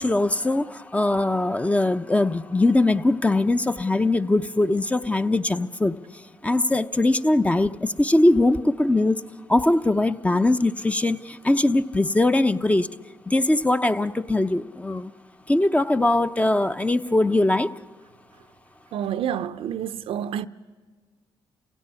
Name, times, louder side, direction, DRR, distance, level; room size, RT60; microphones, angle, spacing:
voice 1, 0.0-6.0 6.4-9.2 9.5-12.9 13.3-15.1 15.5-17.8, left 2 dB, 15° left, 0.8 m, -21 dB
voice 2, 18.9-20.5, right 9 dB, 75° right, 0.7 m, -28 dB
29.5 x 16.5 x 9.7 m
cardioid pair, 80°, 10 cm